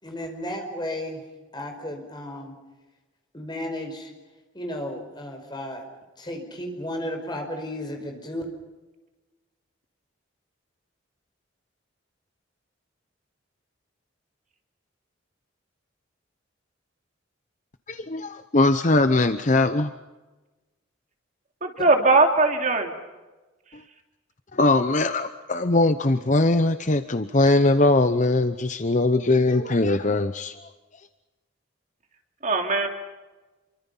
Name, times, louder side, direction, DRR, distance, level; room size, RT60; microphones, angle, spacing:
voice 1, 0.0-1.2 1.5-2.5 3.3-4.1 4.5-5.9 6.2-8.4, left 1 dB, 20° left, 3 dB, 5.0 m, -33 dB
voice 2, 17.9-19.9 24.5-30.5, left 2 dB, 35° left, 10 dB, 0.8 m, -21 dB
voice 3, 21.6-22.9 32.4-32.9, right 3 dB, 40° right, 4 dB, 2.9 m, -20 dB
28.0 x 24.5 x 5.6 m, 1.2 s
head